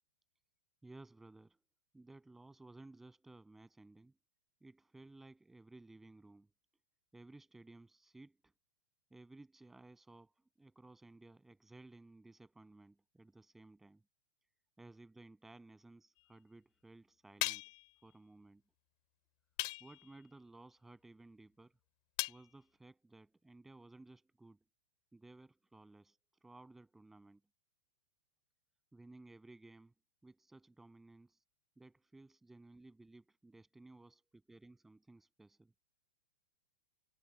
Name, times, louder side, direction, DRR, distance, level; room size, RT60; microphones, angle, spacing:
voice 1, 0.8-1.6 1.9-4.1 4.6-6.5 7.1-8.5 9.1-14.0 14.8-17.7 18.0-18.6 19.8-21.8 22.3-24.6 25.1-27.4 28.9-29.9 30.2-31.4 31.8-35.7, right 2 dB, 5° right, 8.0 m, -58 dB
sound 1, 17.4-17.9 19.6-20.1 22.2-22.4, left 23 dB, 45° left, 2.0 m, -38 dB
supercardioid pair, 160°, 6 cm